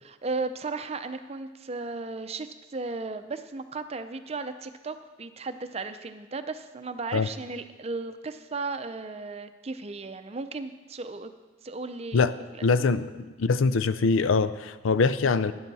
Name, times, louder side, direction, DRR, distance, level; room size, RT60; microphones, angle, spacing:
voice 1, 0.0-11.3 11.6-12.2 12.5-12.7, right 3 dB, 30° right, 9 dB, 0.5 m, -35 dB
voice 2, 12.6-15.5, left 4 dB, 85° left, 14 dB, 0.5 m, -23 dB
12.0 x 10.5 x 4.1 m, 1.2 s
head